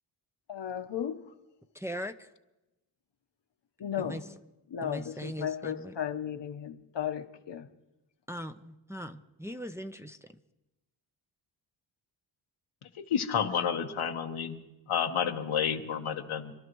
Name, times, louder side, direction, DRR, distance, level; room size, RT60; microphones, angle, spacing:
voice 1, 0.5-1.2 3.8-4.2 4.7-7.7, left 9 dB, 60° left, 7 dB, 1.2 m, -35 dB
voice 2, 1.7-2.3 4.0-4.2 4.8-5.9 8.3-10.3, equal, 5° right, 6 dB, 0.7 m, -40 dB
voice 3, 12.9-14.6 14.9-16.5, left 7 dB, 85° left, 3 dB, 1.4 m, -30 dB
26.5 x 12.0 x 3.1 m, 0.98 s
cardioid pair, 55°, 48 cm